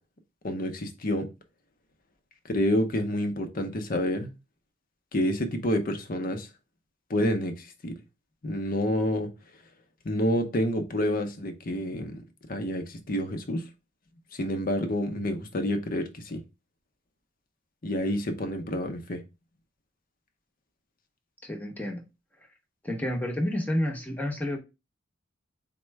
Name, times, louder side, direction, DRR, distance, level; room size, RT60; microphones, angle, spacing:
voice 1, 0.4-1.3 2.5-4.3 5.1-6.5 7.1-7.9 8.4-9.3 10.0-12.2 12.5-13.7 14.3-16.4 17.8-19.2, equal, 50° left, 0.7 m, -28 dB
voice 2, 21.4-22.0 22.8-24.6, left 1 dB, 10° left, 0.8 m, -30 dB
4.3 x 2.1 x 4.5 m
head